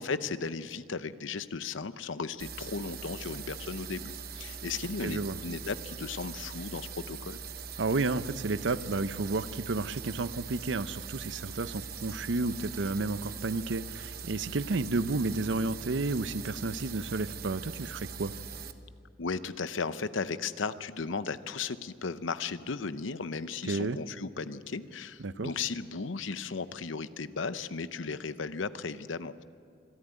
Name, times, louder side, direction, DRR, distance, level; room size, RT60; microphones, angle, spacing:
voice 1, 0.0-7.4 19.2-29.4, left 4 dB, 85° left, 13 dB, 0.8 m, -36 dB
sound 1, 2.4-18.7, right 6 dB, 55° right, 1.0 m, -42 dB
voice 2, 5.0-5.4 7.8-18.3 23.7-24.0 25.2-25.5, right 3 dB, 70° right, 13 dB, 0.7 m, -31 dB
25.0 x 13.5 x 9.3 m, 2.3 s
head